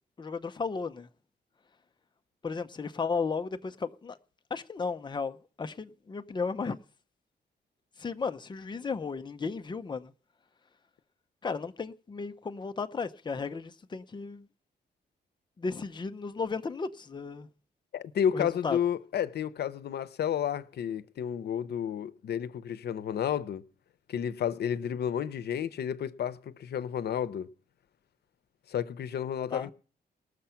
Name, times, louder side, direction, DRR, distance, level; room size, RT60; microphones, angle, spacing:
voice 1, 0.2-1.1 2.4-4.2 4.5-6.8 8.0-10.1 11.4-14.5 15.6-17.5 18.3-18.8 29.5-29.7, left 4 dB, 25° left, 0.7 m, -34 dB
voice 2, 17.9-23.6 24.1-27.5 28.7-29.7, left 9 dB, 80° left, 0.8 m, -31 dB
19.5 x 6.7 x 5.8 m
wide cardioid pair, 140°, 17 cm